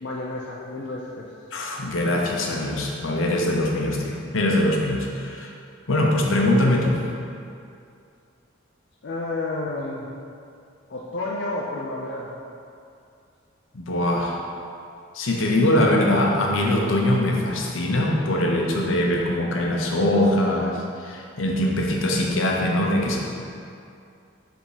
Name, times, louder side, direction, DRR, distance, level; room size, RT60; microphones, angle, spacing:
voice 1, 0.0-1.3 9.0-10.1 10.9-12.3, left 2 dB, 55° left, -3 dB, 0.5 m, -30 dB
voice 2, 1.5-5.5 5.9-7.0 13.7-14.4 15.1-23.2, left 1 dB, 80° left, 0 dB, 0.8 m, -22 dB
5.2 x 3.7 x 4.9 m, 2.4 s
head